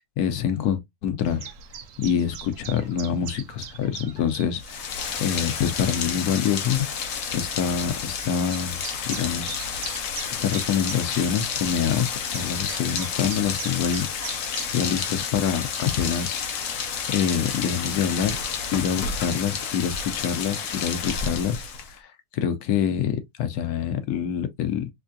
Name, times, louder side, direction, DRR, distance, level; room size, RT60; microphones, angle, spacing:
voice 1, 0.2-1.5 2.0-4.9 5.2-6.9 7.3-8.8 9.0-9.6 10.4-14.1 14.7-16.4 17.1-18.4 18.7-21.6 21.9-22.0 22.3-24.9, left 8 dB, 90° left, 1.2 m, -26 dB
Chirp tweet, 1.2-14.8, right 8 dB, 80° right, 1.2 m, -42 dB
Rain, 4.6-22.0, left 6 dB, 65° left, 1.1 m, -30 dB
3.6 x 3.3 x 2.5 m
omnidirectional pair, 1.6 m